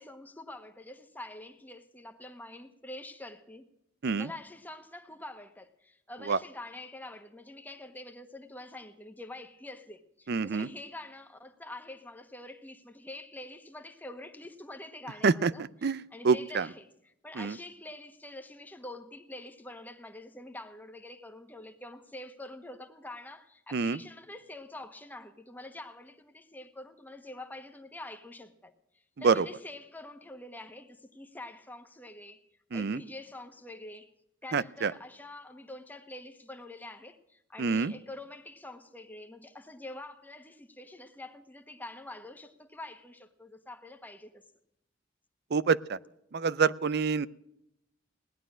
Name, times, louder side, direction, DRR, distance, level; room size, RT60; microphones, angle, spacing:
voice 1, 0.0-3.7 4.2-28.7 29.2-32.4 32.7-34.1 34.4-44.5, left 2 dB, 10° left, 1.3 m, -46 dB
voice 2, 10.3-10.7 15.2-15.5 15.8-16.7 17.4-17.6 23.7-24.0 29.2-29.5 32.7-33.0 34.5-34.9 37.6-37.9 45.5-46.0 46.3-47.3, right 5 dB, 55° right, 0.5 m, -26 dB
18.0 x 11.5 x 6.2 m
head